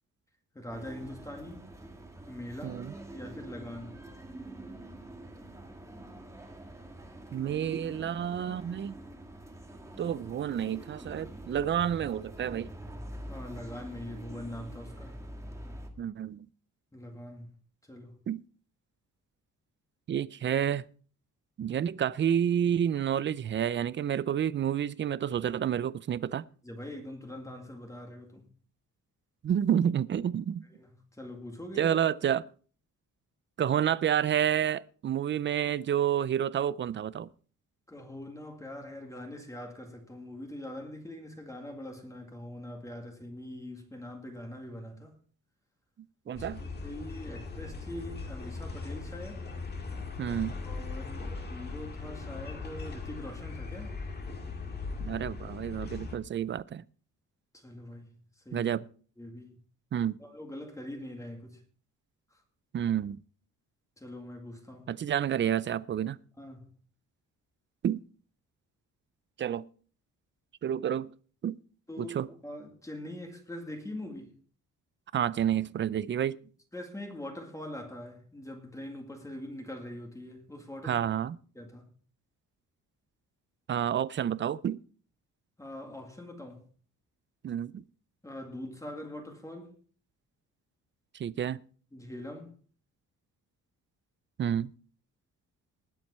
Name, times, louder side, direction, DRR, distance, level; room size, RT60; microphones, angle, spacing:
voice 1, 0.5-1.6 2.3-2.8 3.1-4.1 13.3-15.2 16.9-17.5 17.8-18.2 26.6-28.5 30.7-32.0 37.9-45.2 46.3-49.5 50.7-53.9 57.5-58.7 59.2-59.6 60.2-61.6 62.3-62.4 64.0-64.9 66.4-66.7 71.9-74.3 76.7-81.1 81.6-81.8 85.6-86.6 88.2-89.7 91.9-92.5, left 1 dB, 10° left, 2.1 m, -43 dB
sound 1, 0.7-15.9, right 1 dB, 10° right, 1.7 m, -45 dB
voice 2, 2.6-2.9 7.3-9.0 10.0-12.7 16.0-16.5 18.3-18.4 20.1-20.8 21.6-26.4 29.4-30.7 31.8-32.4 33.6-37.3 46.3-46.6 50.2-50.5 55.0-56.8 58.5-58.8 59.9-60.2 62.7-63.2 64.9-66.2 67.8-68.0 69.4-69.7 70.6-71.1 71.4-71.6 72.0-72.3 75.1-76.4 80.8-81.4 83.7-84.8 87.4-87.8 91.1-91.6 94.4-94.7, right 9 dB, 35° right, 0.4 m, -29 dB
sound 2, 46.4-56.2, left 4 dB, 30° left, 2.0 m, -39 dB
19.5 x 7.7 x 4.3 m
wide cardioid pair, 165°, 32 cm